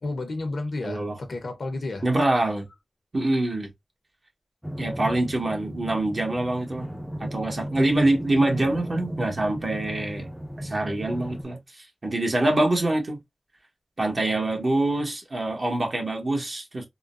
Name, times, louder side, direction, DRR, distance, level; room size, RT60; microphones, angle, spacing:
voice 1, 0.0-2.0, left 2 dB, 75° left, 0.9 m, -31 dB
voice 2, 0.8-1.2 2.0-2.7 3.1-3.7 4.8-6.9 7.2-10.3 10.6-13.2 14.0-16.9, right 2 dB, 50° right, 1.2 m, -25 dB
sound 1, 4.6-11.4, equal, ahead, 0.6 m, -35 dB
3.7 x 2.2 x 2.5 m
wide cardioid pair, 65°, 0 cm